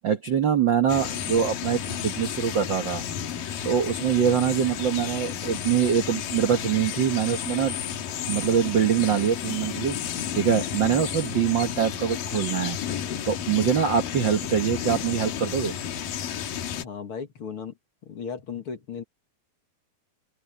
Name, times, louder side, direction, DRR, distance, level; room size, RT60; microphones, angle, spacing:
voice 1, 0.0-3.0 3.6-7.8 8.3-10.0 10.4-12.8 13.2-15.7, right 8 dB, 85° right, 1.0 m, -24 dB
sound 1, 0.9-16.8, left 9 dB, 70° left, 3.2 m, -32 dB
voice 2, 16.8-17.7 18.0-19.0, left 6 dB, 45° left, 2.2 m, -36 dB
open air
omnidirectional pair, 4.1 m